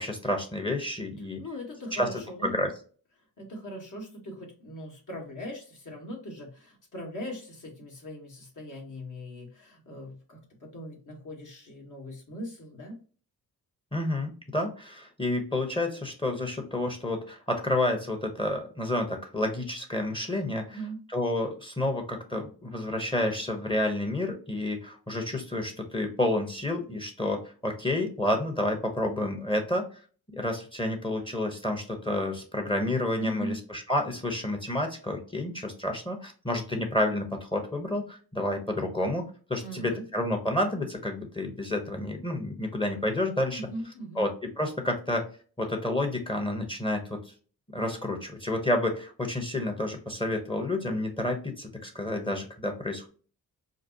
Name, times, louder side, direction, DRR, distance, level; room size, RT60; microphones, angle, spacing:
voice 1, 0.0-1.4 1.9-2.1 2.4-2.7 13.9-20.8 21.1-29.8 30.3-39.2 39.5-43.6 44.2-44.3 44.6-45.2 45.6-47.2 47.7-53.1, left 1 dB, 15° left, 4 dB, 1.0 m, -30 dB
voice 2, 1.4-2.5 3.4-13.0 20.7-21.0 33.2-33.6 39.6-40.0 43.6-44.3, equal, 50° left, 0 dB, 1.8 m, -40 dB
4.9 x 2.1 x 2.9 m, 0.40 s
cardioid pair, 65°, 40 cm